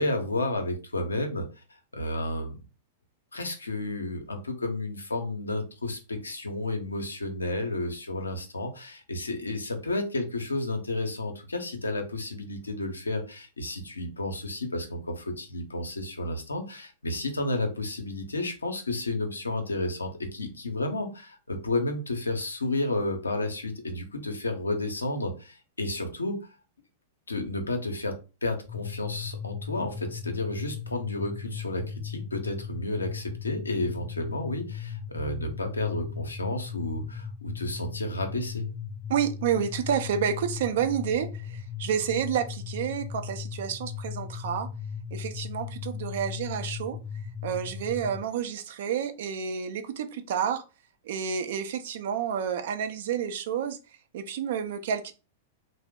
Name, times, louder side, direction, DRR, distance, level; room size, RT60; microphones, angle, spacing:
voice 1, 0.0-2.6 3.3-26.4 27.3-38.7, left 2 dB, 85° left, 0.6 m, -31 dB
sound 1, 28.7-48.2, left 7 dB, 30° left, 0.6 m, -37 dB
voice 2, 39.1-44.7 45.1-47.0 47.4-50.6 51.0-53.8 54.1-55.1, right 8 dB, 60° right, 0.5 m, -29 dB
2.8 x 2.0 x 3.5 m
figure-of-eight pair, 100°, 0 cm